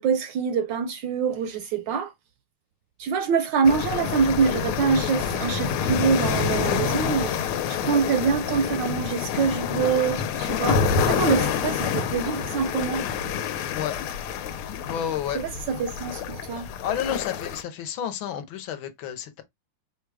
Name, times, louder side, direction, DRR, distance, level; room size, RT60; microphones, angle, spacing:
voice 1, 0.0-2.1 3.0-7.4 7.7-13.0 15.3-16.7, right 6 dB, 75° right, 1.1 m, -25 dB
sound 1, 3.6-17.6, left 7 dB, 90° left, 1.6 m, -27 dB
voice 2, 14.9-15.4 16.8-19.4, left 9 dB, 70° left, 1.4 m, -30 dB
5.0 x 2.2 x 4.7 m
omnidirectional pair, 2.4 m